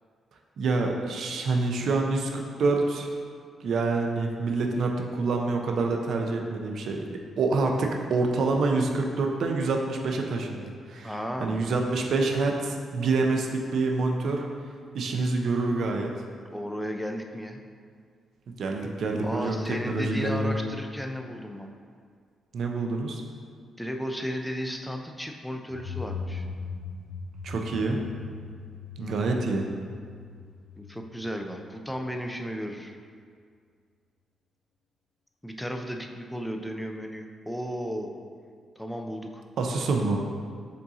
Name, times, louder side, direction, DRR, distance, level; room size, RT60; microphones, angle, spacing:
voice 1, 0.6-3.2 3.6-11.1 11.4-14.5 14.9-16.1 18.6-19.6 19.9-20.6 22.5-23.2 27.4-28.0 29.0-29.7 39.6-40.2, right 3 dB, 70° right, 2 dB, 0.5 m, -27 dB
voice 2, 11.0-11.6 16.5-17.6 19.2-21.7 23.8-26.4 29.0-29.2 30.8-33.0 35.4-38.1 38.8-39.4, equal, 5° left, 3 dB, 0.4 m, -34 dB
sound 1, 25.7-32.3, left 4 dB, 75° left, 0.3 m, -40 dB
5.2 x 3.7 x 2.7 m, 2.1 s
cardioid pair, 85°, 0 cm